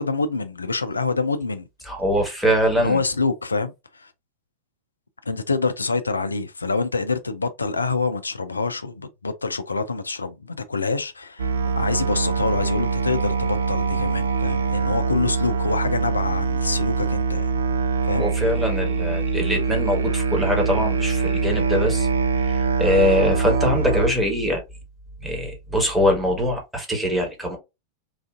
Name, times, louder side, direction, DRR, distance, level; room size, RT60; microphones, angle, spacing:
voice 1, 0.0-1.7 2.8-4.1 5.3-17.5 18.0-18.3, left 4 dB, 80° left, 0.4 m, -26 dB
voice 2, 1.8-3.0 18.2-22.1 22.4-24.6 25.2-27.6, left 1 dB, 5° right, 1.2 m, -23 dB
Musical instrument, 11.4-24.1, right 5 dB, 70° right, 0.3 m, -23 dB
3.2 x 2.4 x 2.4 m
figure-of-eight pair, 90°, 0 cm